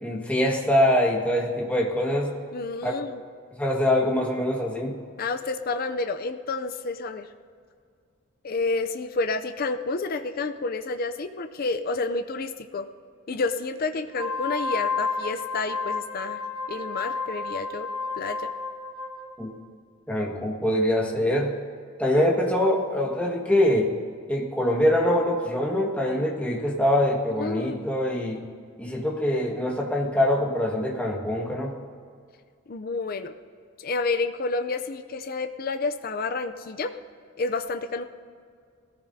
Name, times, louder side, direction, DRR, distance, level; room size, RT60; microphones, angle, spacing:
voice 1, 0.0-2.3 2.8-2.9 3.6-4.9 19.4-19.5 20.1-21.5 22.0-23.9 24.3-28.4 28.8-31.7, left 1 dB, 5° left, -2 dB, 1.6 m, -24 dB
voice 2, 2.5-3.2 5.2-7.3 8.4-12.9 13.3-16.4 16.7-17.9 18.1-18.5 27.4-27.8 32.7-33.3 33.8-36.9 37.4-38.0, left 3 dB, 45° left, 8 dB, 0.5 m, -29 dB
Wind instrument woodwind instrument, 14.1-19.3, left 4 dB, 65° left, 2.0 m, -31 dB
20.5 x 14.5 x 2.7 m, 2.1 s
head